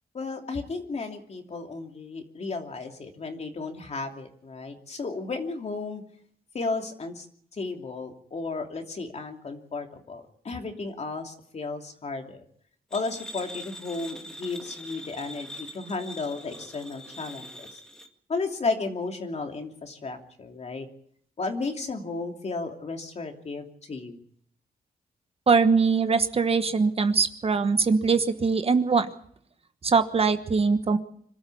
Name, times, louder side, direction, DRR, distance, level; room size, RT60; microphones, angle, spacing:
voice 1, 0.1-6.0 6.5-7.3 7.5-12.4 12.9-17.8 18.3-20.9 21.4-24.2, left 3 dB, 45° left, 4 dB, 2.9 m, -34 dB
sound 1, 12.9-18.1, left 1 dB, 5° left, 1.9 m, -42 dB
voice 2, 25.5-29.1 29.8-31.0, right 5 dB, 40° right, 10 dB, 1.2 m, -22 dB
26.0 x 13.0 x 8.5 m, 0.65 s
wide cardioid pair, 115°, 15 cm